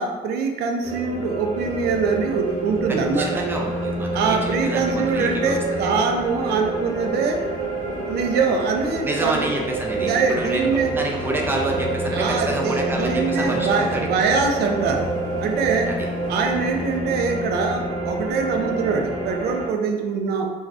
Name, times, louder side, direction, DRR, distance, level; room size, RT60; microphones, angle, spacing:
voice 1, 0.0-3.4 4.1-7.4 8.1-9.5 10.0-10.9 12.1-15.1 15.4-15.9 16.3-20.5, right 5 dB, 70° right, 3 dB, 0.5 m, -23 dB
sound 1, 0.8-19.7, right 2 dB, 20° left, 0.9 m, -28 dB
sound 2, 1.5-17.0, left 3 dB, 45° left, 0.6 m, -41 dB
voice 2, 2.9-5.9 9.0-14.2 15.9-16.0, right 1 dB, 15° right, 0 dB, 0.5 m, -28 dB
2.5 x 2.2 x 3.2 m, 1.3 s
cardioid pair, 110°, 17 cm